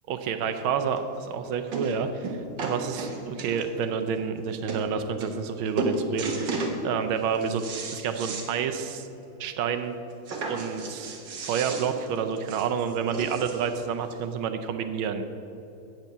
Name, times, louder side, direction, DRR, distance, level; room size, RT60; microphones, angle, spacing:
voice 1, 0.1-7.6 7.9-9.1 9.4-10.0 10.5-11.2 11.5-15.2, right 6 dB, 80° right, 8 dB, 1.5 m, -29 dB
sound 1, 1.0-1.1 1.7-2.0 2.2-3.8 4.4-4.5 4.7-4.8 5.2-5.5 5.8-6.8 7.2-8.5 8.9-9.0 9.3-9.4 10.3-13.7 14.5-14.6, right 3 dB, 65° right, 1.8 m, -33 dB
7.9 x 7.3 x 6.7 m, 2.8 s
omnidirectional pair, 2.3 m